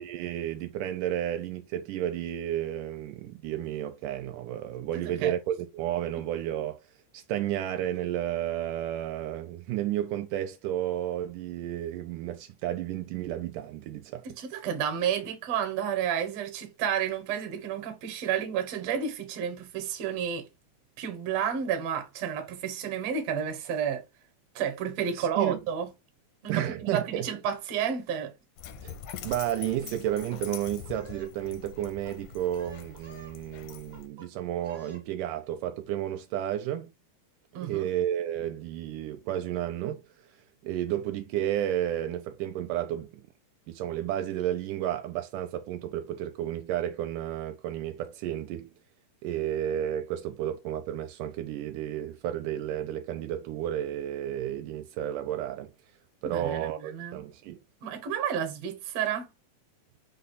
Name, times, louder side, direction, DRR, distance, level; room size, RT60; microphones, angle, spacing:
voice 1, 0.0-6.8 7.1-14.3 25.2-25.6 26.5-27.3 28.8-29.0 29.2-36.9 37.6-40.0 40.6-43.2 43.7-48.7 49.2-55.7 56.2-57.6, right 11 dB, 80° right, 2.0 m, -32 dB
voice 2, 4.9-5.3 14.3-20.5 21.0-24.0 24.6-25.9 26.4-28.3 37.5-37.9 56.2-57.3 57.8-59.3, right 8 dB, 65° right, 1.8 m, -31 dB
Dog, 28.6-34.1, left 8 dB, 85° left, 2.2 m, -44 dB
sound 1, 30.0-31.3 31.6-32.1 32.4-33.4 33.7-34.3 34.6-35.0, right 1 dB, 50° right, 0.5 m, -51 dB
5.4 x 2.3 x 3.9 m
omnidirectional pair, 3.7 m